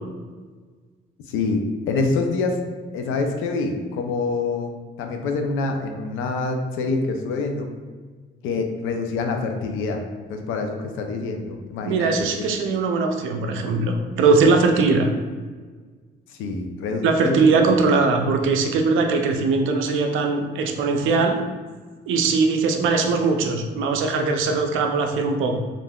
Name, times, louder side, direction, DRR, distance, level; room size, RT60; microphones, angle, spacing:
voice 1, 1.3-1.6 1.9-2.6 2.9-7.7 8.4-10.0 10.3-12.1 12.4-12.5 16.3-17.6 18.0-18.1, left 3 dB, 90° left, 4 dB, 0.4 m, -26 dB
voice 2, 11.8-15.1 17.0-21.4 22.1-25.6, right 4 dB, 85° right, 4 dB, 0.4 m, -20 dB
3.4 x 2.5 x 2.2 m, 1.4 s
cardioid pair, 90°, 20 cm